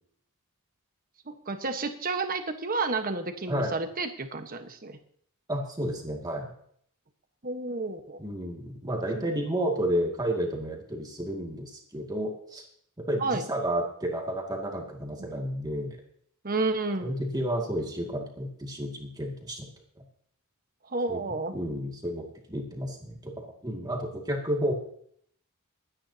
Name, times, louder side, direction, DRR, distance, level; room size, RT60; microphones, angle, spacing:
voice 1, 1.3-5.0 7.4-8.2 9.2-9.3 13.2-13.4 15.2-15.3 16.4-17.1 20.9-21.5, right 3 dB, 40° right, 7 dB, 1.3 m, -31 dB
voice 2, 5.5-6.5 8.2-12.6 13.0-16.0 17.0-19.7 21.1-21.2 21.5-24.7, right 1 dB, 15° right, 0 dB, 2.2 m, -31 dB
22.5 x 9.9 x 2.8 m, 0.65 s
head